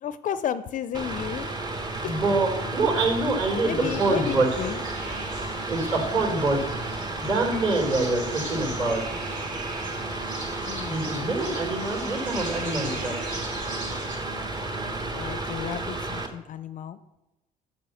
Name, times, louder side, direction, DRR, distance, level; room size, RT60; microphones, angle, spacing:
voice 1, 0.0-1.5 2.0-2.1 3.6-4.8 10.7-11.1 15.1-17.0, left 9 dB, 50° left, 13 dB, 0.5 m, -32 dB
Mechanical fan, 0.9-16.3, right 2 dB, 25° right, 1.1 m, -32 dB
voice 2, 2.0-4.5 5.7-6.6 7.2-9.0 10.9-13.1, right 2 dB, 40° right, 1 dB, 3.6 m, -25 dB
sound 1, 3.8-14.2, right 2 dB, 60° right, 4.2 m, -40 dB
9.4 x 5.3 x 7.7 m, 0.96 s
cardioid pair, 110°, 17 cm